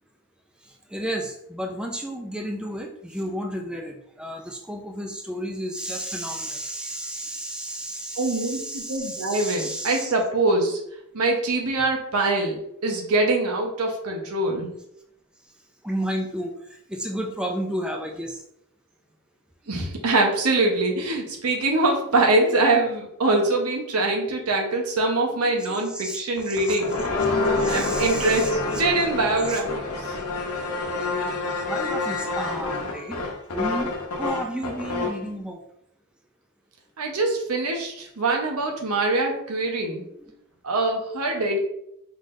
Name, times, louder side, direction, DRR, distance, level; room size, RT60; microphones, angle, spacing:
voice 1, 0.9-10.1 15.8-18.4 25.3-26.8 27.6-28.5 29.4-29.6 31.7-35.6 40.2-40.3, right 1 dB, 5° right, 2 dB, 0.4 m, -32 dB
voice 2, 8.2-10.8 11.1-14.7 19.7-27.0 27.7-30.2 37.0-40.0 40.6-41.6, right 2 dB, 85° right, 2 dB, 1.0 m, -23 dB
sound 1, 26.4-35.2, left 3 dB, 85° left, 0.8 m, -27 dB
4.7 x 3.9 x 2.6 m, 0.76 s
head